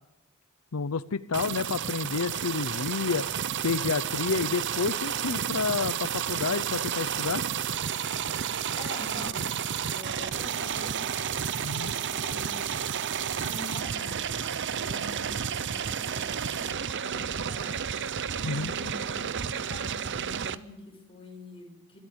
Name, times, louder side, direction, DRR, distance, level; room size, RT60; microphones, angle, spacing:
voice 1, 0.7-3.3 3.6-7.4 11.6-11.9 18.4-18.7, left 5 dB, 85° left, 14 dB, 0.7 m, -30 dB
sound 1, 1.3-20.5, right 8 dB, 55° right, 0.7 m, -31 dB
voice 2, 8.7-9.5 9.8-11.1 11.9-14.4 14.7-18.0 18.4-22.0, left 2 dB, 25° left, 2 dB, 5.6 m, -45 dB
27.0 x 13.5 x 8.0 m, 0.89 s
head